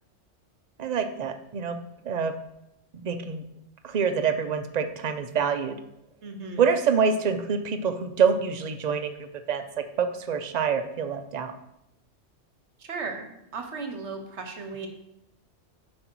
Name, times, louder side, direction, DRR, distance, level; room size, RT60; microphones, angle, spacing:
voice 1, 0.8-2.3 3.0-3.4 3.8-5.8 6.6-9.1 9.5-11.5, right 6 dB, 45° right, 8 dB, 0.6 m, -26 dB
voice 2, 6.2-6.7 12.8-14.9, right 4 dB, 65° right, 5 dB, 1.2 m, -36 dB
7.8 x 5.3 x 4.5 m, 0.84 s
omnidirectional pair, 1.3 m